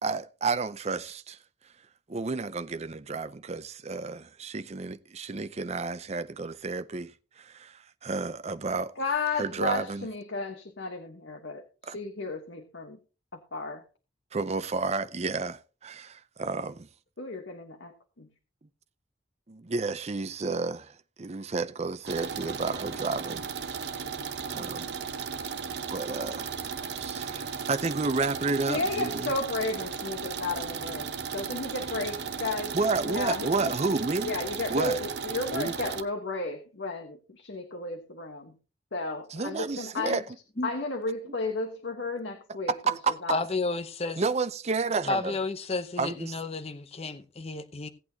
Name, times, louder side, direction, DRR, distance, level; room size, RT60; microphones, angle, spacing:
voice 1, 0.0-1.4 2.1-7.1 7.4-8.9 9.3-10.1 11.9-12.0 14.3-16.9 19.5-20.9 21.2-23.8 24.5-24.9 25.9-26.6 26.9-29.3 32.7-34.3 34.7-35.0 35.5-35.7 39.3-40.2 42.7-43.2 44.2-45.4 46.0-46.3, right 4 dB, 35° right, 0.6 m, -31 dB
voice 2, 9.0-13.0 13.3-13.8 17.2-18.3 28.6-32.8 33.0-33.7 34.2-38.6 38.9-40.2 40.6-43.4, left 3 dB, 85° left, 1.3 m, -33 dB
sound 1, 22.1-36.0, right 6 dB, 65° right, 0.9 m, -35 dB
voice 3, 43.3-44.2 45.0-47.9, left 3 dB, 35° left, 0.8 m, -31 dB
17.0 x 8.6 x 2.8 m
head